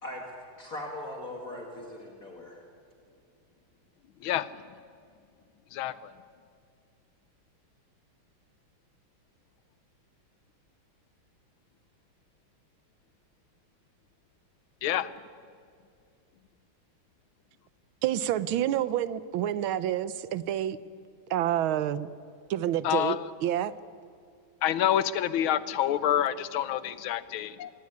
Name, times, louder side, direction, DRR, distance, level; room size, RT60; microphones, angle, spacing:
voice 1, 0.6-2.6, left 1 dB, 40° left, 0 dB, 2.8 m, -39 dB
voice 2, 5.7-6.1 14.8-15.1 22.8-23.3 24.6-27.7, left 11 dB, 80° left, 16 dB, 1.6 m, -27 dB
voice 3, 18.0-20.8 21.3-22.1 22.5-23.7, right 11 dB, 80° right, 16 dB, 1.6 m, -28 dB
25.0 x 17.5 x 9.5 m, 2.3 s
omnidirectional pair, 2.3 m